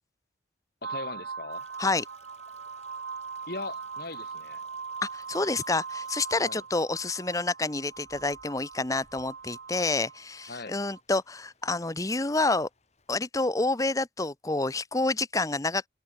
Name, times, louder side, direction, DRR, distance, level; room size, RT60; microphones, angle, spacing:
voice 1, 0.8-1.7 3.5-4.6 6.4-6.6 10.5-10.8, left 2 dB, 55° left, 2.7 m, -39 dB
sound 1, 0.8-11.0, right 5 dB, 75° right, 0.8 m, -41 dB
Stream, 1.5-13.3, left 4 dB, 35° left, 6.3 m, -64 dB
voice 2, 5.0-12.7 13.1-15.9, left 3 dB, 20° left, 0.8 m, -28 dB
head